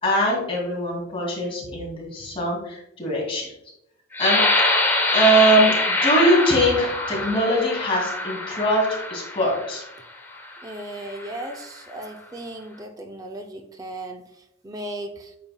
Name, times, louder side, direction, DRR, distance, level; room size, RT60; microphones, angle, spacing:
voice 1, 0.0-3.5 4.2-4.4 4.7-4.8 5.1-9.8, right 1 dB, 25° left, -4 dB, 2.4 m, -22 dB
sound 1, 4.1-9.8 10.5-10.6 11.1-11.5, left 2 dB, 10° left, 0.9 m, -24 dB
voice 2, 10.6-15.4, right 1 dB, 15° right, 5 dB, 0.4 m, -36 dB
8.7 x 5.6 x 2.2 m, 0.83 s
head